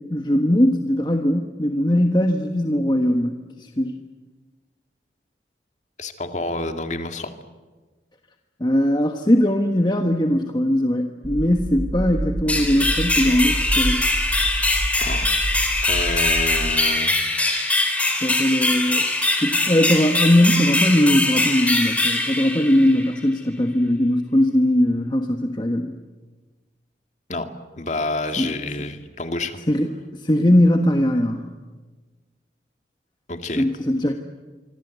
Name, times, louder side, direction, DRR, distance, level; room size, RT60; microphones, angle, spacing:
voice 1, 0.1-4.0 8.6-14.0 18.2-19.0 19.4-25.9 28.4-28.5 29.7-31.4 33.6-34.1, left 1 dB, 25° left, 5 dB, 1.3 m, -20 dB
voice 2, 6.0-7.3 15.0-15.4 15.8-17.2 27.3-27.5 27.8-29.6 33.3-33.7, left 2 dB, 40° left, 7 dB, 2.2 m, -28 dB
sound 1, 11.2-16.7, right 1 dB, 70° right, 1.1 m, -28 dB
sound 2, 12.5-23.2, left 2 dB, 10° left, 3.6 m, -22 dB
26.0 x 24.5 x 8.2 m, 1.3 s
head